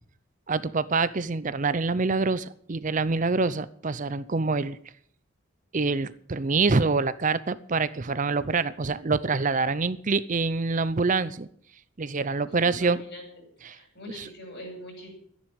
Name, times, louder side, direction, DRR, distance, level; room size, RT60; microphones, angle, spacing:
voice 1, 0.5-4.8 5.7-11.5 12.0-13.0 13.6-13.8 14.2-14.3, right 4 dB, 40° right, 16 dB, 0.6 m, -26 dB
voice 2, 12.6-13.2 13.6-15.1, left 1 dB, 55° left, 2 dB, 7.0 m, -42 dB
13.0 x 10.5 x 8.9 m, 0.62 s
head